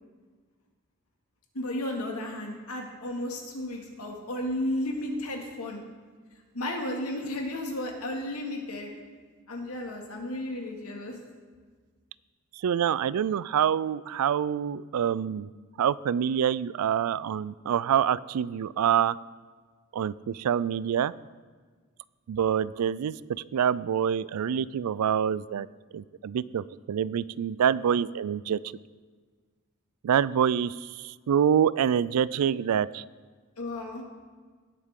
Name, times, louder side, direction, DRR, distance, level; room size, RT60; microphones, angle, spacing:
voice 1, 1.5-5.8 6.5-8.9 9.5-11.2 33.6-34.0, left 1 dB, 80° left, 1 dB, 2.2 m, -33 dB
voice 2, 12.6-15.5 15.8-19.2 19.9-21.1 22.3-23.1 23.5-25.7 25.9-28.6 30.0-33.0, right 8 dB, 85° right, 20 dB, 0.3 m, -26 dB
19.0 x 8.1 x 3.7 m, 1.5 s
head